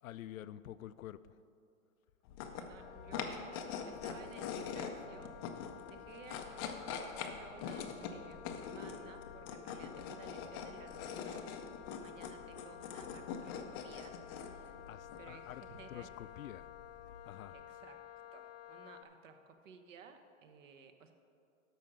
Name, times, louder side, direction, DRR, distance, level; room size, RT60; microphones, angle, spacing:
voice 1, 0.0-1.4 14.9-15.6 15.9-16.7 17.2-17.6, left 12 dB, 90° left, 15 dB, 0.5 m, -48 dB
sound 1, 2.2-17.6, left 6 dB, 20° left, 0.4 m, -44 dB
voice 2, 2.6-3.5 3.8-5.4 5.9-14.8 15.2-16.1 17.5-18.0 18.3-21.1, right 6 dB, 70° right, 7 dB, 1.1 m, -56 dB
Wind instrument woodwind instrument, 2.8-19.0, left 12 dB, 50° left, 0.8 m, -53 dB
12.5 x 5.0 x 6.2 m, 2.5 s
hypercardioid pair, 140°, 40 cm